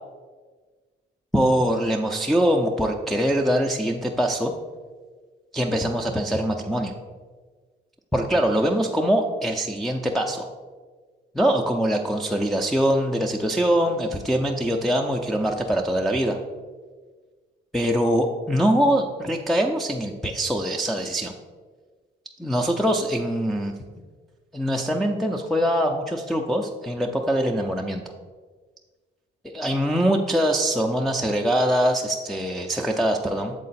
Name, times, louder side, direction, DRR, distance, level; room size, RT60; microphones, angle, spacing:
voice 1, 1.3-4.5 5.5-6.9 8.1-10.5 11.3-16.4 17.7-21.3 22.4-23.7 24.5-28.0 29.5-33.5, equal, ahead, 0 dB, 0.4 m, -23 dB
7.5 x 3.8 x 4.1 m, 1.4 s
cardioid pair, 90°, 20 cm